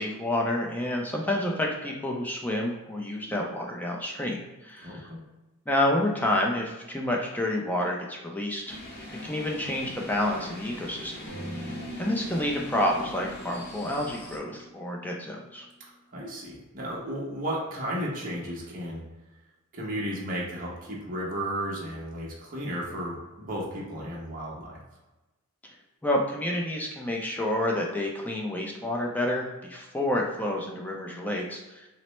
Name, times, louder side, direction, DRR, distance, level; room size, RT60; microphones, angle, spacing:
voice 1, 0.0-5.1 5.7-8.7 9.2-11.2 11.6-15.7 26.0-31.9, left 1 dB, 10° left, -1 dB, 0.5 m, -29 dB
voice 2, 4.8-5.2 16.1-19.0 19.7-24.8, equal, 40° right, -4 dB, 0.8 m, -34 dB
sound 1, 8.7-14.4, left 1 dB, 45° left, 0.8 m, -42 dB
sound 2, 11.3-15.9, equal, 70° left, 0.9 m, -43 dB
4.3 x 2.1 x 3.0 m, 1.1 s
head